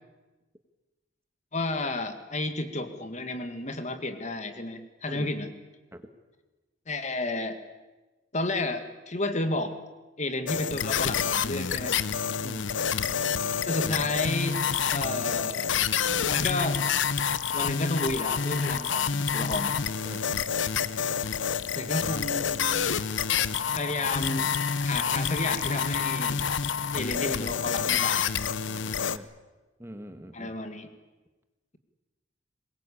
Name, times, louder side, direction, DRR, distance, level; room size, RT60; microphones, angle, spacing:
voice 1, 1.5-5.5 6.9-7.6 8.3-9.7 10.2-12.0 13.7-14.6 14.9-15.7 16.3-16.8 17.5-19.7 21.8-22.9 23.7-24.5 24.8-26.4 26.9-28.2 30.3-30.9, left 2 dB, 40° left, 8 dB, 2.0 m, -32 dB
sound 1, 10.5-29.2, left 7 dB, 85° left, 0.8 m, -28 dB
voice 2, 20.0-20.4 28.6-29.3 29.8-30.5, equal, 15° right, 8 dB, 1.4 m, -43 dB
23.5 x 21.0 x 8.6 m, 1.2 s
head